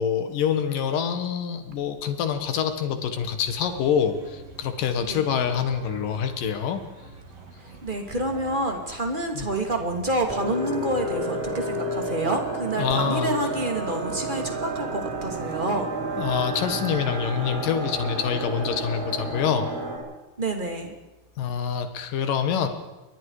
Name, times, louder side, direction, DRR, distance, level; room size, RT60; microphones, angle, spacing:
voice 1, 0.0-6.8 9.4-9.5 12.8-13.4 16.2-19.7 21.4-22.7, left 7 dB, 65° left, 8 dB, 3.1 m, -26 dB
sound 1, 3.2-19.4, right 3 dB, 45° right, 3.7 m, -47 dB
voice 2, 7.8-15.9 20.4-20.9, right 1 dB, 15° right, 3 dB, 2.2 m, -28 dB
sound 2, 10.3-20.0, right 2 dB, 90° right, 9.1 m, -31 dB
29.0 x 22.5 x 5.0 m, 1.1 s
omnidirectional pair, 4.3 m